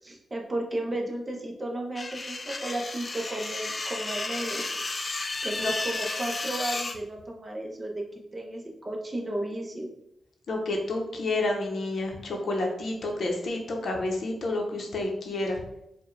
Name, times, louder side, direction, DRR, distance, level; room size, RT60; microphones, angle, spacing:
voice 1, 0.0-4.7 5.4-9.9, right 1 dB, 20° right, 0 dB, 0.7 m, -34 dB
sound 1, 1.9-7.0, left 3 dB, 30° left, 0.3 m, -33 dB
voice 2, 10.5-15.6, left 2 dB, 65° left, 1 dB, 0.7 m, -29 dB
4.6 x 2.2 x 3.2 m, 0.79 s
wide cardioid pair, 125°, 0 cm